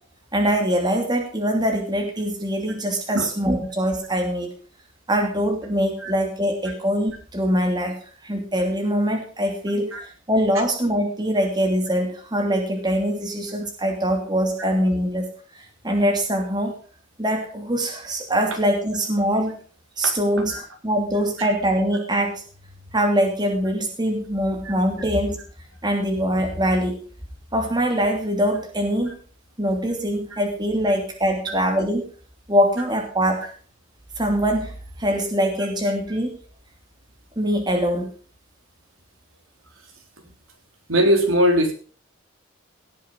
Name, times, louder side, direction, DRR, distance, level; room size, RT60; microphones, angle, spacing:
voice 1, 0.3-4.5 5.1-8.0 8.2-10.0 10.3-15.3 15.8-16.7 17.2-19.5 20.0-22.4 22.9-25.4 25.8-27.0 27.5-29.1 29.6-32.1 32.5-33.5 34.2-34.7 35.0-36.4 37.4-38.1, equal, 20° right, 2 dB, 2.8 m, -23 dB
voice 2, 40.9-41.7, equal, 85° right, 3 dB, 3.7 m, -20 dB
17.5 x 7.5 x 5.5 m, 0.41 s
head